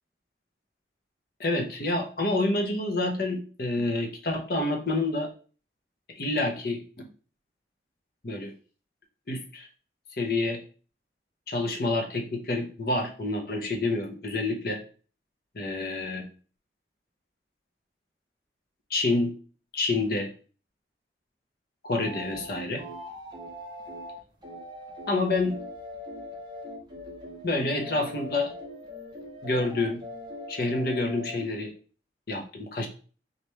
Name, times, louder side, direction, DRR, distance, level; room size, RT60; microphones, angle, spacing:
voice 1, 1.4-5.3 6.2-7.1 8.2-8.5 9.3-9.7 10.2-10.6 11.5-14.8 15.5-16.2 18.9-19.3 19.7-20.3 21.8-22.8 25.1-25.6 27.4-28.5 29.4-30.0 30.5-31.7 32.3-32.9, left 2 dB, 55° left, 3 dB, 0.9 m, -28 dB
sound 1, 22.0-22.5 22.8-31.6, left 1 dB, 25° right, 1.0 m, -41 dB
4.1 x 3.1 x 3.3 m, 0.38 s
head